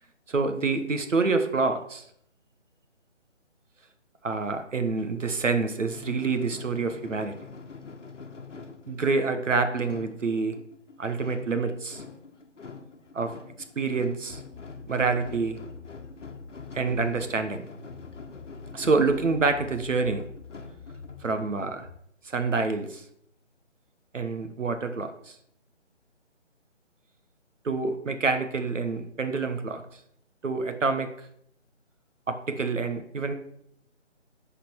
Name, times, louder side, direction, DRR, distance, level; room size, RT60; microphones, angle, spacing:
voice 1, 0.3-2.0 4.2-7.3 8.9-10.6 11.0-12.0 13.1-13.3 13.8-14.4 14.9-15.6 16.7-17.6 18.7-20.2 21.2-21.9 22.2-23.0 24.1-25.3 27.6-29.8 30.4-31.1 32.3-33.3, right 4 dB, 80° right, 8 dB, 1.2 m, -27 dB
sound 1, 5.9-21.7, left 4 dB, 75° left, 1.1 m, -45 dB
sound 2, 14.3-22.0, left 4 dB, 50° left, 1.1 m, -46 dB
11.0 x 4.3 x 4.5 m, 0.70 s
figure-of-eight pair, 160°, 37 cm